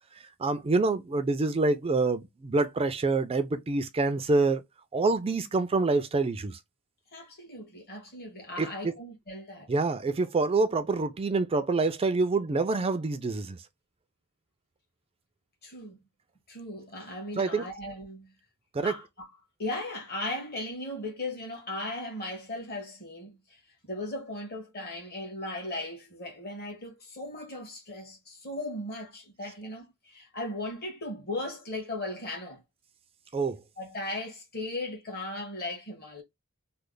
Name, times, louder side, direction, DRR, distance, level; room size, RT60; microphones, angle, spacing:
voice 1, 0.4-4.6 4.9-6.6 8.6-8.9 9.7-13.6 17.4-17.6 18.7-19.0 33.3-33.6, right 3 dB, 25° right, 0.4 m, -26 dB
voice 2, 7.1-9.7 15.6-16.0 16.5-18.3 18.8-19.3 19.6-23.4 23.8-32.6 33.8-36.2, left 1 dB, 45° left, 1.4 m, -37 dB
3.2 x 2.0 x 3.7 m
head